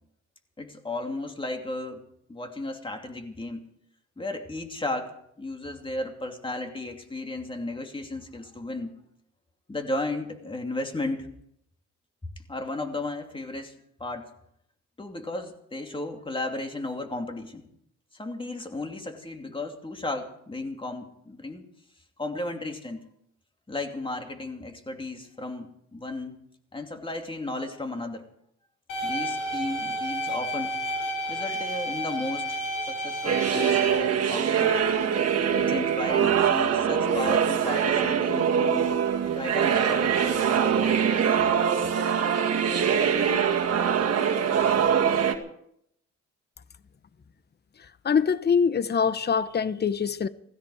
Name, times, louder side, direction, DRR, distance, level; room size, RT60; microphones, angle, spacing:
voice 1, 0.6-2.0 2.3-3.6 4.2-8.9 9.7-11.3 12.5-13.7 14.0-14.3 15.0-17.7 18.1-21.6 22.2-23.0 23.7-26.4 26.7-28.3 29.0-30.8 31.3-32.6 32.9-34.7 35.5-38.9 39.3-40.1, left 2 dB, 15° left, 2.7 m, -34 dB
sound 1, 28.9-33.9, equal, 85° left, 4.7 m, -31 dB
sound 2, 33.2-45.3, right 7 dB, 55° right, 2.0 m, -23 dB
voice 2, 48.0-50.3, left 6 dB, 35° left, 0.9 m, -24 dB
17.5 x 15.5 x 4.9 m
cardioid pair, 90°, 30 cm